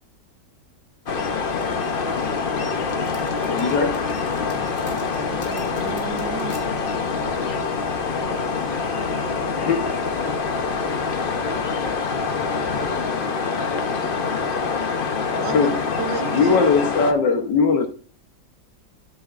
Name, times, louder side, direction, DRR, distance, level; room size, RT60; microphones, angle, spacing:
sound 1, 1.1-17.1, left 5 dB, 50° left, 0.7 m, -25 dB
sound 2, 1.6-6.6, equal, 10° left, 2.5 m, -46 dB
voice 1, 3.5-4.0 7.5-7.7 8.7-9.1 9.6-9.9 15.5-15.8 16.3-17.9, left 5 dB, 80° left, 1.6 m, -20 dB
voice 2, 5.1-7.1 15.4-15.7 16.0-16.6, right 10 dB, 85° right, 1.3 m, -34 dB
13.0 x 6.9 x 2.5 m
omnidirectional pair, 1.9 m